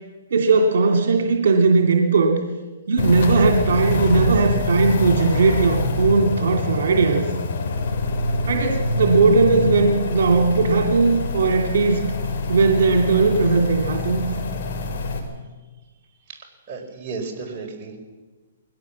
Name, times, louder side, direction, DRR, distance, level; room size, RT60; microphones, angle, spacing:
voice 1, 0.3-2.4 2.9-7.3 8.5-12.0 12.5-14.3, right 4 dB, 70° right, 3 dB, 2.6 m, -18 dB
sound 1, 3.0-15.2, left 3 dB, 60° left, 4.6 m, -25 dB
voice 2, 16.7-18.0, right 4 dB, 30° right, -1 dB, 4.7 m, -33 dB
21.5 x 17.0 x 7.4 m, 1.3 s
hypercardioid pair, 150°, 0 cm